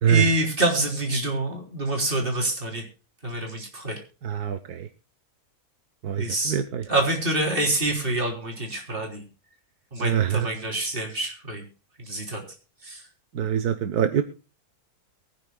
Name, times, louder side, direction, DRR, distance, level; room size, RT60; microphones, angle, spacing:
voice 1, 0.1-2.9 3.2-4.0 6.2-6.6 6.9-9.2 9.9-11.6 12.0-12.5 12.8-13.0, right 1 dB, 35° right, 1 dB, 3.9 m, -26 dB
voice 2, 4.2-4.9 6.0-6.8 10.0-10.5 13.3-14.2, right 9 dB, 80° right, 9 dB, 1.5 m, -24 dB
23.5 x 9.9 x 2.3 m, 0.32 s
omnidirectional pair, 1.6 m